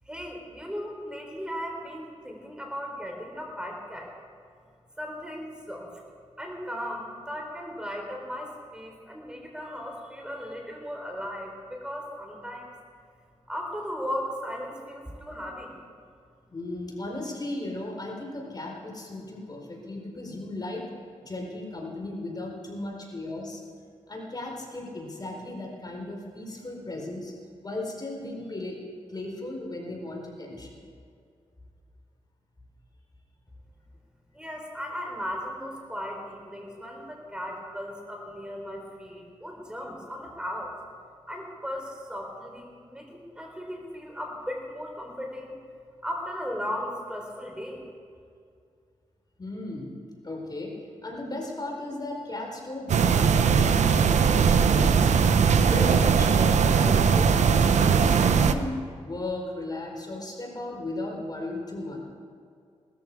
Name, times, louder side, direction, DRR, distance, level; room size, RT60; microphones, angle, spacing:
voice 1, 0.1-4.1 5.0-5.9 6.4-12.7 13.5-15.8 34.3-40.7 41.3-45.6 46.0-47.8, equal, 5° right, 1 dB, 3.9 m, -36 dB
voice 2, 16.5-20.9 21.2-23.6 24.1-27.3 27.6-28.8 29.1-30.8 49.4-49.9 50.2-50.7 51.0-55.3 55.7-58.8 59.0-62.0, left 2 dB, 35° left, 0 dB, 4.3 m, -36 dB
sound 1, 52.9-58.5, right 6 dB, 75° right, 0.8 m, -20 dB
19.5 x 14.0 x 4.7 m, 2.3 s
cardioid pair, 55°, 12 cm